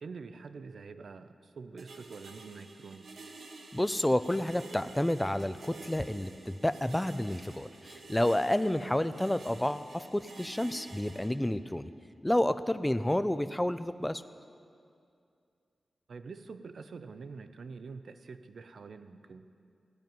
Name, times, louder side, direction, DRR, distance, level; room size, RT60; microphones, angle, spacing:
voice 1, 0.0-3.1 8.8-9.0 16.1-19.5, right 4 dB, 70° right, 10 dB, 0.5 m, -46 dB
sound 1, 1.8-11.3, right 3 dB, 85° right, 1.1 m, -50 dB
voice 2, 3.7-11.9 12.2-14.2, left 1 dB, 10° left, 12 dB, 0.3 m, -30 dB
15.0 x 5.2 x 9.2 m, 2.4 s
wide cardioid pair, 130°, 0 cm